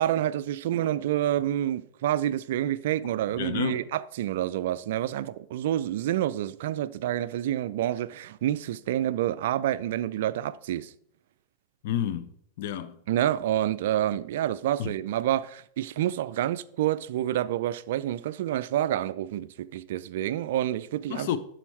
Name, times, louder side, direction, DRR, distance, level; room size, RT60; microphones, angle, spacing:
voice 1, 0.0-10.9 13.1-21.3, right 12 dB, 55° right, 0.3 m, -28 dB
voice 2, 3.4-3.8 11.8-12.3 12.6-13.0 14.8-14.9 21.1-21.4, left 10 dB, 50° left, 0.6 m, -30 dB
11.0 x 4.3 x 4.5 m
figure-of-eight pair, 90°, 0 cm